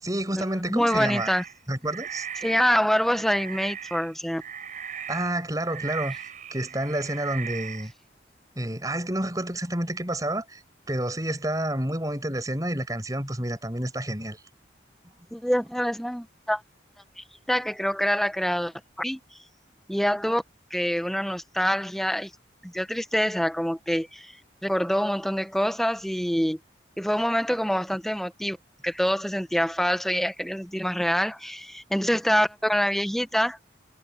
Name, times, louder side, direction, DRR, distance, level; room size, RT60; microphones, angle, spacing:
voice 1, 0.0-1.3 1.7-2.3 5.1-7.9 8.6-10.6 10.9-14.4, right 1 dB, 20° right, 5.5 m, -29 dB
voice 2, 0.6-1.4 2.4-4.4 15.3-16.6 17.2-19.2 19.9-20.4 20.7-22.3 22.6-24.4 24.6-26.6 27.0-28.6 28.8-33.6, equal, ahead, 1.0 m, -25 dB
sound 1, 0.9-1.6 1.8-7.9, right 8 dB, 45° right, 6.7 m, -38 dB
head